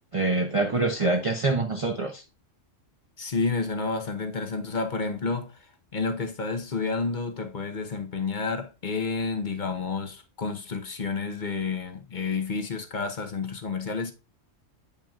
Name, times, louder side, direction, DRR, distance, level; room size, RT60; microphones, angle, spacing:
voice 1, 0.1-2.2, right 3 dB, 30° right, 0.7 m, -25 dB
voice 2, 3.2-5.6 5.9-14.1, left 4 dB, 40° left, 1.0 m, -30 dB
8.6 x 5.7 x 2.4 m
omnidirectional pair, 1.3 m